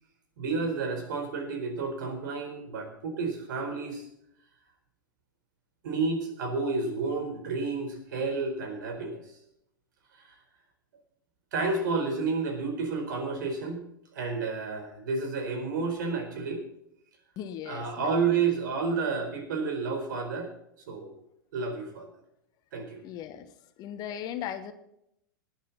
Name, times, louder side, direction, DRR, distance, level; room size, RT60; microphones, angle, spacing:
voice 1, 0.4-4.1 5.8-9.2 10.2-10.3 11.5-13.8 14.1-16.6 17.7-20.5 20.9-21.2 21.5-22.1 22.7-23.0, right 4 dB, 60° right, 6 dB, 4.3 m, -30 dB
voice 2, 17.4-18.4 23.0-23.5 23.8-24.7, left 10 dB, 35° left, 9 dB, 1.4 m, -38 dB
18.5 x 10.5 x 4.2 m, 0.77 s
figure-of-eight pair, 100°, 11 cm